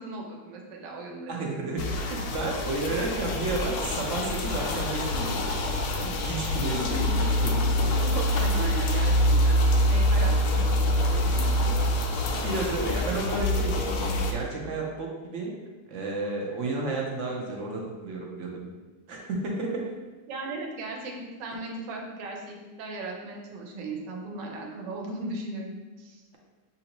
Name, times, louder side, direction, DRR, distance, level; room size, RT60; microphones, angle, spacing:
voice 1, 0.0-1.4 6.7-7.2 8.0-11.7 12.4-12.5 20.3-26.2, right 2 dB, 85° right, -1 dB, 1.4 m, -37 dB
voice 2, 1.3-5.4 6.0-7.9 12.1-15.5 15.9-18.7 19.1-19.9, right 3 dB, 65° right, -1 dB, 0.7 m, -32 dB
sound 1, 1.8-14.3, left 1 dB, 70° left, 0.9 m, -25 dB
6.7 x 2.6 x 2.9 m, 1.2 s
omnidirectional pair, 1.9 m